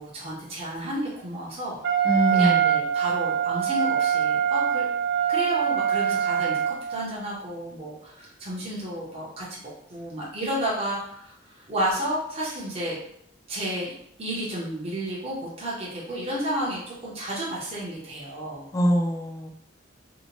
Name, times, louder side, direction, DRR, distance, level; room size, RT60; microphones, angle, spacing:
voice 1, 0.0-1.8 2.3-4.9 5.3-9.6 9.9-13.0 13.5-13.9 14.2-18.7, equal, 35° right, -6 dB, 0.7 m, -31 dB
Wind instrument woodwind instrument, 1.8-7.1, right 9 dB, 75° right, 0.6 m, -24 dB
voice 2, 2.0-2.8 18.7-19.5, equal, 15° left, 2 dB, 0.3 m, -23 dB
2.7 x 2.1 x 2.8 m, 0.69 s
head